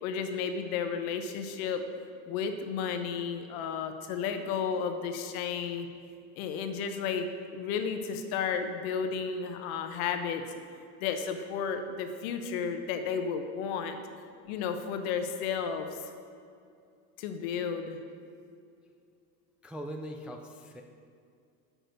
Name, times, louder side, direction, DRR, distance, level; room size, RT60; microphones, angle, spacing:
voice 1, 0.0-1.8 2.3-5.9 6.4-10.4 11.0-14.0 14.4-16.0 17.2-18.0, left 6 dB, 65° left, 7 dB, 1.1 m, -33 dB
voice 2, 19.6-20.8, equal, 5° right, 2 dB, 0.3 m, -41 dB
6.5 x 6.4 x 6.4 m, 2.4 s
hypercardioid pair, 95°, 46 cm